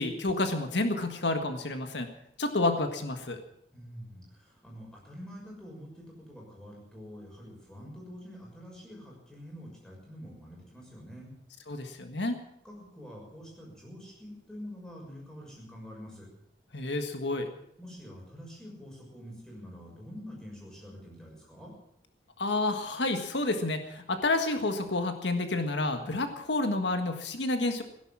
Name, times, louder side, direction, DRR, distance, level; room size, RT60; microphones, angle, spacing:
voice 1, 0.0-2.1 2.4-3.4 11.7-12.4 16.7-17.5 22.4-27.8, left 2 dB, 85° left, 6 dB, 1.6 m, -29 dB
voice 2, 3.7-11.4 12.6-16.3 17.8-21.7, equal, 5° left, -2 dB, 6.3 m, -46 dB
17.5 x 11.0 x 7.4 m, 0.73 s
head